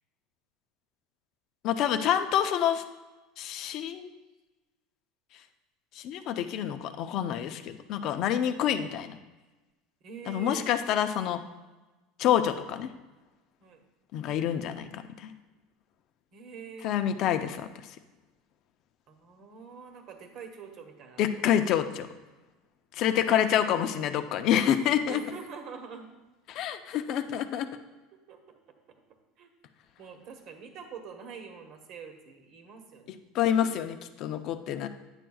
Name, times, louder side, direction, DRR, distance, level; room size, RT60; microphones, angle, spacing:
voice 1, 1.6-2.8 3.4-4.2 5.9-9.2 10.3-11.4 12.2-12.9 14.1-15.3 16.8-17.7 21.2-22.1 22.9-25.2 26.5-27.7 33.3-34.9, left 10 dB, 50° left, 8 dB, 0.6 m, -27 dB
voice 2, 10.0-10.7 13.6-13.8 16.3-16.9 19.1-21.6 23.3-23.8 25.1-26.1 28.3-29.0 29.4-29.5 30.0-33.1 33.5-33.6, right 6 dB, 50° right, 5 dB, 1.1 m, -45 dB
9.8 x 7.6 x 2.3 m, 1.2 s
supercardioid pair, 140°, 0 cm